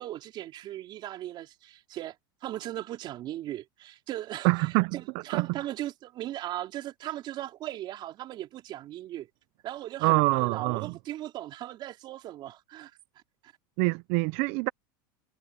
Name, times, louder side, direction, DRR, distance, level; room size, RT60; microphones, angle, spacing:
voice 1, 0.0-2.2 2.4-9.3 9.6-12.9, right 13 dB, 45° right, 3.9 m, -38 dB
voice 2, 4.4-5.0 5.3-5.5 10.0-10.9 13.8-14.7, right 26 dB, 60° right, 0.5 m, -25 dB
supercardioid pair, 130°, 11 cm